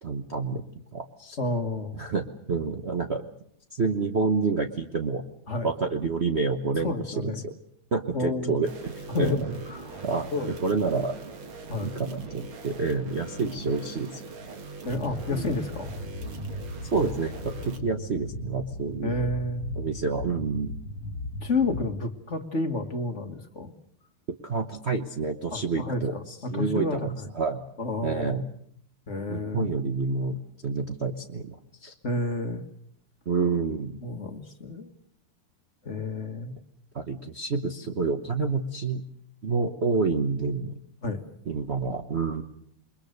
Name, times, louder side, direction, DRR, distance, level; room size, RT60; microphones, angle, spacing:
voice 1, 0.0-0.6 0.9-1.4 1.9-3.2 3.7-5.2 5.6-7.5 7.9-9.5 10.0-11.1 11.8-14.3 15.3-15.5 16.9-19.2 19.8-20.8 24.4-27.6 28.0-28.4 29.3-30.4 30.6-31.6 31.8-31.9 33.3-34.0 36.9-39.0 39.4-40.8 41.5-42.4, right 4 dB, 40° right, 5 dB, 1.0 m, -28 dB
voice 2, 1.4-2.0 5.5-5.7 6.8-7.4 8.1-8.7 9.1-10.0 10.3-10.5 11.7-11.9 13.4-13.5 14.8-15.9 19.0-19.7 21.4-23.7 25.5-27.3 27.8-28.4 29.1-29.7 32.0-32.6 34.0-34.9 35.8-36.6 41.0-41.2, left 2 dB, 35° left, 6 dB, 1.8 m, -30 dB
sound 1, 8.6-17.8, right 4 dB, 70° right, 2.9 m, -41 dB
sound 2, 14.9-21.9, left 2 dB, 70° left, 2.0 m, -37 dB
28.5 x 22.0 x 6.6 m, 0.70 s
omnidirectional pair, 2.4 m